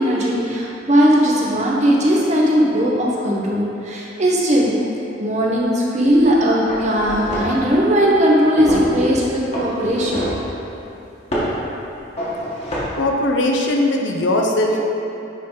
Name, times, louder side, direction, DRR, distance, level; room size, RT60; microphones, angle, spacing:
voice 1, 0.0-4.7 5.2-10.2, equal, 40° right, -3 dB, 1.0 m, -18 dB
sound 1, 6.1-6.3 6.7-7.7 8.7-8.9 9.5-10.5 11.3-11.6 12.2-12.8, equal, 35° left, 1.4 m, -26 dB
voice 2, 12.9-14.8, left 1 dB, 75° left, 1 dB, 0.8 m, -19 dB
9.4 x 3.8 x 3.9 m, 2.8 s
head